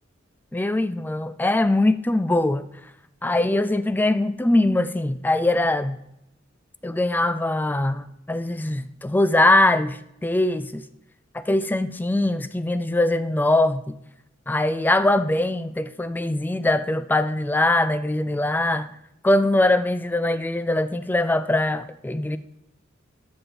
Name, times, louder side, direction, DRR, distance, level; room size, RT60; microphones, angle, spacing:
voice 1, 0.5-2.6 3.2-6.0 6.8-10.8 11.3-13.9 14.5-18.9 19.2-22.4, left 2 dB, 10° left, 13 dB, 0.3 m, -22 dB
13.0 x 5.3 x 4.3 m, 0.80 s
head